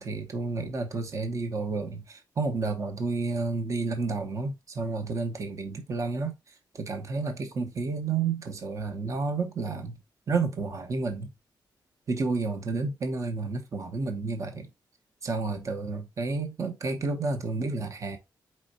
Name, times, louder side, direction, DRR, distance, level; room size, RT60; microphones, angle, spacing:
voice 1, 0.0-6.3 6.7-10.0 10.3-11.3 12.1-14.7 15.2-18.2, right 4 dB, 40° right, 1.0 m, -30 dB
4.5 x 4.1 x 2.6 m
wide cardioid pair, 125°, 8 cm